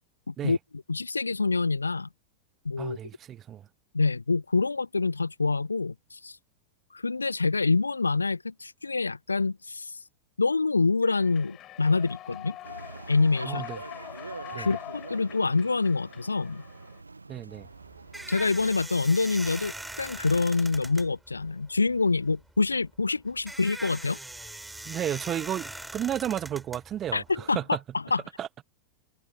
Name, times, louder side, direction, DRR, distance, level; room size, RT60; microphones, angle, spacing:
voice 1, 0.3-0.6 0.9-2.1 2.7-3.0 3.9-6.4 6.9-9.9 10.4-12.6 13.1-13.6 14.6-16.6 18.3-24.2 27.1-27.6 27.9-28.2, left 3 dB, 80° left, 0.4 m, -26 dB
voice 2, 2.8-3.6 13.4-13.8 14.5-14.7 17.3-17.7 24.8-27.8 28.4-28.6, right 10 dB, 30° right, 1.1 m, -33 dB
Human voice / Clapping / Cheering, 11.0-17.0, left 14 dB, 35° left, 7.7 m, -44 dB
sound 1, 12.6-18.8, right 3 dB, 80° right, 1.3 m, -44 dB
sound 2, 17.5-27.5, right 1 dB, 5° right, 7.7 m, -41 dB
figure-of-eight pair, 90°, 0 cm